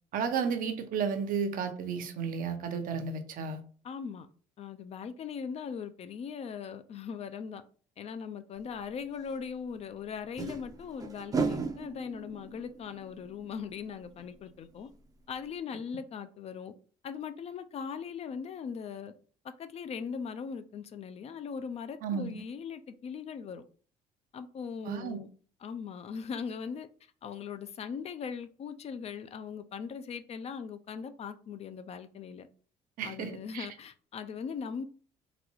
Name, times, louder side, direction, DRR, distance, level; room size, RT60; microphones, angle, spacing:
voice 1, 0.1-3.6 22.0-22.3 24.8-25.2 33.0-33.7, right 6 dB, 70° right, 0.7 m, -33 dB
voice 2, 3.8-4.3 4.6-7.6 8.0-14.9 15.3-16.7 17.0-19.1 19.6-23.6 24.3-25.3 25.6-26.9 27.2-32.5 33.0-34.8, left 6 dB, 45° left, 0.4 m, -39 dB
sound 1, 8.8-8.9 10.2-14.7 15.0-15.1 15.4-15.5, right 4 dB, 25° right, 0.5 m, -36 dB
3.9 x 2.3 x 3.0 m
cardioid pair, 100°, 15 cm